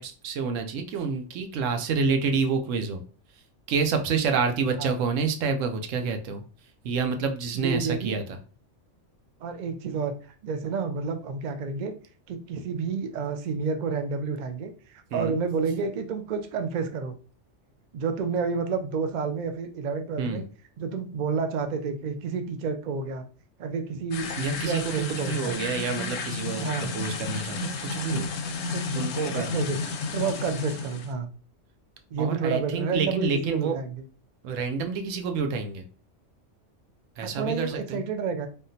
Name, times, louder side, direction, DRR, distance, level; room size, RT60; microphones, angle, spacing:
voice 1, 0.0-3.0 3.7-6.4 6.8-8.4 15.1-15.4 20.2-20.5 24.4-28.3 28.9-29.7 32.2-33.8 34.4-35.9 37.2-38.0, right 5 dB, 85° right, 6 dB, 0.9 m, -28 dB
voice 2, 7.5-8.2 9.4-10.1 10.4-12.0 12.3-17.1 17.9-20.4 20.8-23.2 23.6-25.6 26.6-26.9 28.7-29.1 29.3-29.8 30.1-31.3 32.1-34.0 37.2-38.5, right 5 dB, 65° right, 8 dB, 0.4 m, -30 dB
sound 1, 24.1-31.1, left 4 dB, 85° left, 0.9 m, -32 dB
3.5 x 2.3 x 2.6 m, 0.38 s
omnidirectional pair, 1.3 m